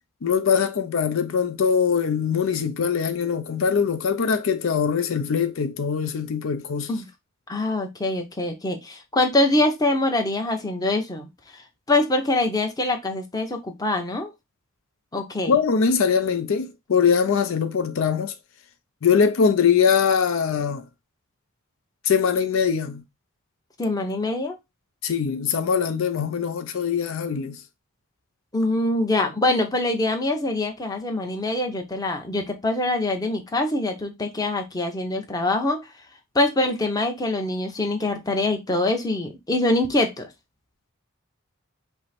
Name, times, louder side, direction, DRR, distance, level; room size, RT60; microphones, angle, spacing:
voice 1, 0.2-6.9 15.5-18.3 19.0-20.8 22.0-23.0 25.0-27.6, left 6 dB, 70° left, 0.5 m, -22 dB
voice 2, 7.5-11.3 11.9-14.3 15.1-15.5 23.8-24.6 28.5-35.8 36.3-40.3, left 2 dB, 20° left, 0.8 m, -24 dB
5.4 x 2.0 x 4.2 m
head